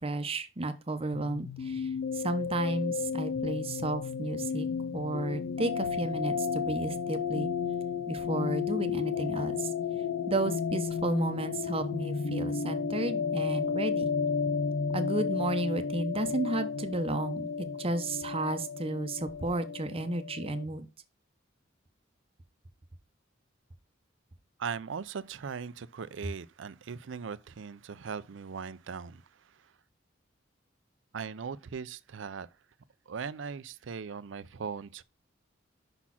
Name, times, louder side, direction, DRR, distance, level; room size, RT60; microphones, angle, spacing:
voice 1, 0.0-1.9 2.1-4.7 4.9-7.5 8.1-9.7 10.3-14.1 14.9-17.5 17.8-20.9, right 2 dB, 30° right, 0.8 m, -32 dB
sound 1, 1.1-20.6, left 6 dB, 90° left, 0.5 m, -33 dB
voice 2, 24.6-29.2 31.1-32.5 33.1-35.0, right 6 dB, 70° right, 0.5 m, -39 dB
5.9 x 4.2 x 5.7 m
head